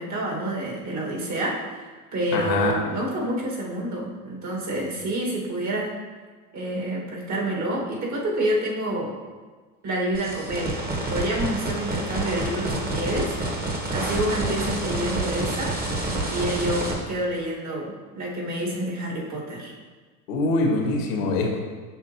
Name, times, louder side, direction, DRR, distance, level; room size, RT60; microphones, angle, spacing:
voice 1, 0.0-1.8 2.1-5.9 6.5-9.2 9.8-13.3 13.9-15.8 16.3-19.7, right 1 dB, 35° right, -2 dB, 2.0 m, -28 dB
voice 2, 2.3-2.7 20.3-21.6, left 2 dB, 70° left, 0 dB, 1.9 m, -23 dB
sound 1, 10.1-16.9, right 1 dB, 20° right, 1.6 m, -28 dB
7.8 x 5.8 x 3.0 m, 1.4 s
hypercardioid pair, 90°, 50 cm